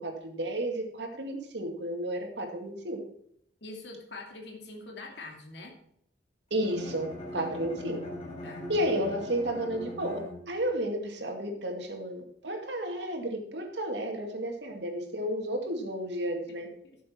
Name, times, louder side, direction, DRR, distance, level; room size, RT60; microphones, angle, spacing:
voice 1, 0.0-3.0 6.5-8.0 8.7-16.7, right 1 dB, 70° right, 3 dB, 2.3 m, -32 dB
voice 2, 3.6-5.8 8.4-8.6 16.8-17.0, left 2 dB, 70° left, 1 dB, 2.3 m, -44 dB
Bowed string instrument, 6.5-10.8, left 1 dB, 35° left, 3.9 m, -41 dB
11.5 x 7.4 x 4.5 m, 0.71 s
head